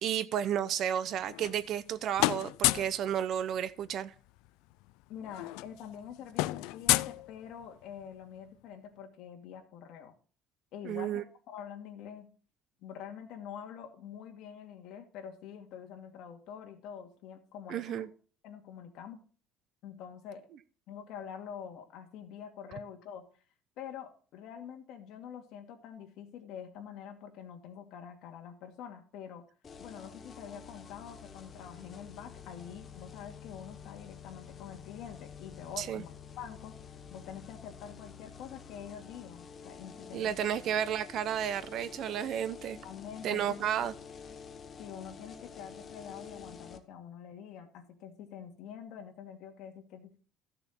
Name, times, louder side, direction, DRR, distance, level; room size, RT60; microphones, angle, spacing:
voice 1, 0.0-4.1 10.9-11.2 17.7-18.1 35.8-36.0 40.1-42.8 43.2-43.9, right 9 dB, 45° right, 0.7 m, -32 dB
sound 1, 1.1-1.9 2.2-3.0 4.4-4.5 4.7-4.9 5.2-7.8, left 20 dB, 85° left, 0.4 m, -31 dB
voice 2, 5.1-10.1 10.7-12.3 12.8-18.0 18.4-19.2 19.8-20.5 20.9-23.3 23.8-29.4 29.8-36.8 37.1-40.5 42.8-43.6 44.8-50.2, left 8 dB, 60° left, 2.3 m, -46 dB
sound 2, 29.6-46.8, left 6 dB, 25° left, 1.1 m, -49 dB
14.5 x 6.8 x 4.3 m
cardioid pair, 165°, 0 cm